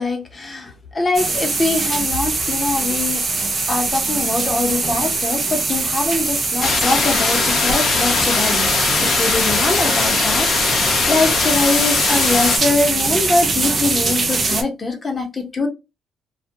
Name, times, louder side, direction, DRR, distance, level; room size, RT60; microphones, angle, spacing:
voice 1, 0.0-3.2 3.7-8.7 9.1-15.7, left 2 dB, 30° left, 0.8 m, -23 dB
sound 1, 1.1-14.6, right 3 dB, 35° right, 0.5 m, -22 dB
sound 2, 6.6-12.6, left 5 dB, 55° left, 0.5 m, -20 dB
2.2 x 2.2 x 2.7 m
cardioid pair, 90°, 0 cm